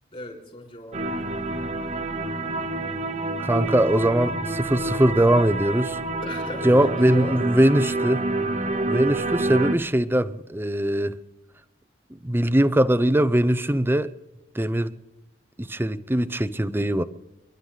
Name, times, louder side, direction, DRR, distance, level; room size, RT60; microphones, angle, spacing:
voice 1, 0.1-1.3 6.2-7.4, left 1 dB, 35° left, 5.3 m, -37 dB
sound 1, 0.9-9.8, right 2 dB, 40° right, 1.1 m, -28 dB
voice 2, 3.4-6.0 6.6-8.3 8.9-11.2 12.2-14.1 14.5-14.9 15.6-17.0, right 1 dB, 15° right, 0.6 m, -21 dB
30.0 x 11.5 x 4.0 m
head